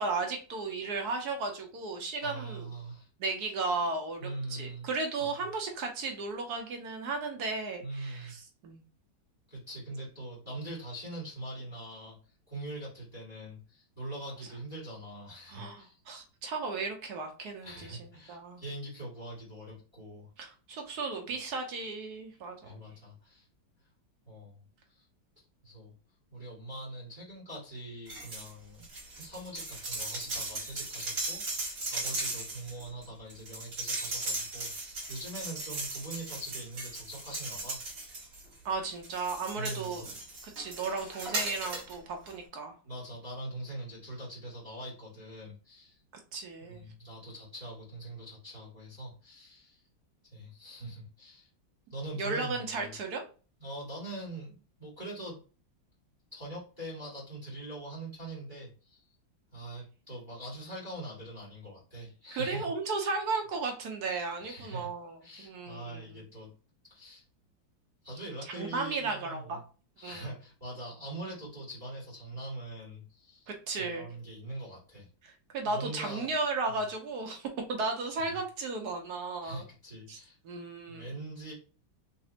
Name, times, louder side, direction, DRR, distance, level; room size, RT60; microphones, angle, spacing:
voice 1, 0.0-2.7 3.2-8.8 15.5-18.6 20.4-22.8 38.6-40.0 40.4-42.7 46.3-46.8 52.2-53.2 62.3-66.1 68.5-69.6 70.0-70.3 73.5-74.1 75.2-79.6 80.1-80.2 80.4-81.1, right 3 dB, 65° right, 3 dB, 1.1 m, -35 dB
voice 2, 2.2-3.1 4.2-4.9 5.2-5.3 7.8-8.3 9.5-12.2 12.5-16.0 17.6-20.3 22.6-23.4 24.3-24.6 24.9-25.0 25.4-25.9 26.3-28.9 29.2-38.2 39.5-40.0 42.8-46.0 46.6-49.8 50.3-51.5 51.9-52.9 53.6-55.4 56.3-59.0 59.5-62.7 64.4-64.9 65.2-66.5 66.8-67.2 68.0-69.6 70.0-73.5 73.8-75.1 75.6-76.3 76.7-76.8 78.2-78.4 79.4-80.4 80.9-81.5, right 1 dB, 10° right, -7 dB, 1.8 m, -43 dB
sound 1, 28.1-28.5 28.8-38.6 39.0-41.9 42.3-42.4, right 2 dB, 45° right, 2.0 m, -37 dB
4.1 x 2.9 x 2.8 m, 0.36 s
omnidirectional pair, 2.1 m